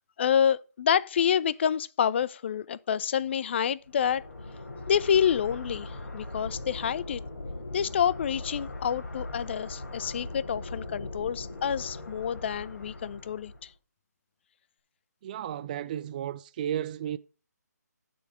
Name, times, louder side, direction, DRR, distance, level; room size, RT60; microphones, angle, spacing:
voice 1, 0.2-4.2 4.9-7.2 7.7-13.7, left 8 dB, 40° left, 0.5 m, -28 dB
sound 1, 3.9-13.7, left 2 dB, 70° left, 4.0 m, -40 dB
voice 2, 15.2-17.2, right 10 dB, 30° right, 0.3 m, -33 dB
8.2 x 7.0 x 5.0 m
figure-of-eight pair, 150°, 9 cm